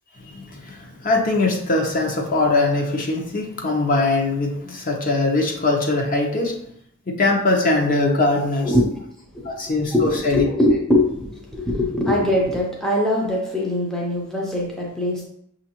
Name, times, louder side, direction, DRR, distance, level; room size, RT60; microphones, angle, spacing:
voice 1, 0.2-6.5 7.1-8.7 9.4-10.4, left 2 dB, 40° left, 1 dB, 0.8 m, -21 dB
voice 2, 8.6-9.0 9.3-15.2, left 1 dB, ahead, -3 dB, 0.5 m, -22 dB
6.0 x 2.6 x 2.8 m, 0.73 s
head